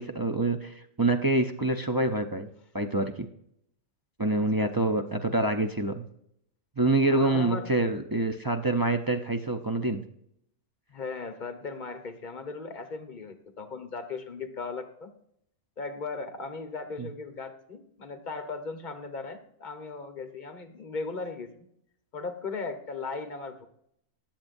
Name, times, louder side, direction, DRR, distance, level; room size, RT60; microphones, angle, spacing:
voice 1, 0.0-2.5 2.7-3.3 4.2-6.1 6.8-10.0 17.0-17.1, right 2 dB, 35° right, 4 dB, 0.3 m, -26 dB
voice 2, 4.3-4.9 7.1-7.7 10.9-15.1 15.8-21.5 22.1-23.7, left 4 dB, 40° left, 7 dB, 1.2 m, -37 dB
19.5 x 7.4 x 2.6 m, 0.73 s
omnidirectional pair, 1.4 m